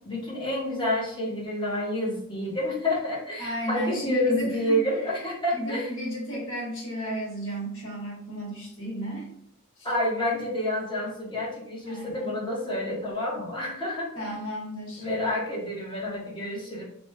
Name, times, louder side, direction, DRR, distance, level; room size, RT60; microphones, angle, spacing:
voice 1, 0.0-5.9 9.8-14.3 15.0-16.8, left 1 dB, 20° left, -5 dB, 1.0 m, -29 dB
voice 2, 3.4-4.8 5.5-9.3 9.8-9.9 11.8-12.3 14.1-15.1, equal, 65° left, -3 dB, 1.0 m, -33 dB
2.8 x 2.2 x 3.3 m, 0.71 s
head